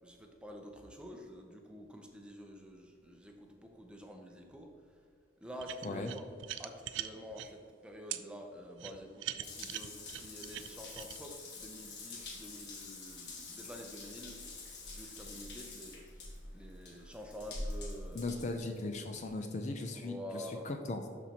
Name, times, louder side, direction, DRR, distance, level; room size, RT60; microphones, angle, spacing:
voice 1, 0.0-4.7 5.4-6.2 6.6-14.4 14.8-16.0 16.5-18.2 19.9-20.7, equal, 5° right, 2 dB, 0.6 m, -48 dB
sound 1, 5.6-7.5 8.1-8.2 8.8-11.2, right 12 dB, 75° right, 0.4 m, -41 dB
Water tap faucet / Bathtub (filling or washing) / Drip, 9.4-19.3, left 2 dB, 60° left, 1.3 m, -46 dB
voice 2, 18.1-21.1, left 2 dB, 35° left, 5 dB, 0.4 m, -38 dB
12.0 x 4.2 x 2.9 m, 2.2 s
head